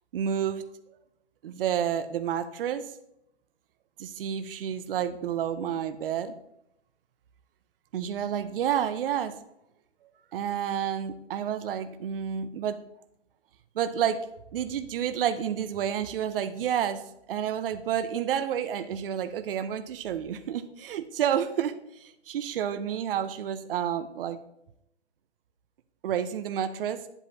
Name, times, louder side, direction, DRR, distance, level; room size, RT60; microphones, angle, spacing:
voice 1, 0.1-0.6 1.4-2.9 4.0-6.3 7.9-9.4 10.3-12.8 13.8-14.2 14.5-17.0 17.3-24.4 26.0-27.0, right 9 dB, 55° right, 10 dB, 0.7 m, -30 dB
10.0 x 8.1 x 2.8 m, 0.79 s
hypercardioid pair, 140°, 34 cm